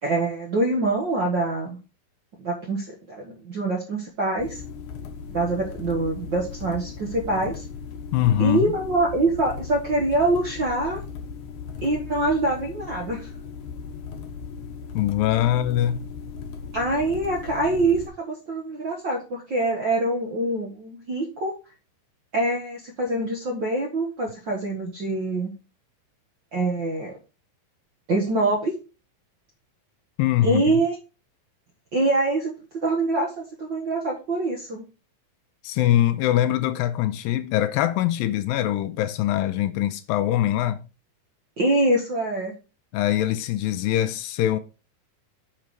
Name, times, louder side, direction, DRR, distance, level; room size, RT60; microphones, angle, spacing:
voice 1, 0.0-1.8 2.4-4.6 5.3-7.6 8.4-11.0 11.8-13.3 16.7-21.5 22.3-25.5 26.5-27.1 28.1-28.7 30.4-30.9 31.9-32.5 32.8-34.8 41.6-42.5, right 2 dB, 60° right, 1.2 m, -24 dB
sound 1, 4.4-18.1, left 5 dB, 65° left, 2.5 m, -37 dB
voice 2, 8.1-8.8 14.9-16.1 30.2-30.6 35.6-40.8 42.9-44.6, left 12 dB, 85° left, 2.3 m, -23 dB
6.7 x 4.6 x 5.2 m
omnidirectional pair, 4.1 m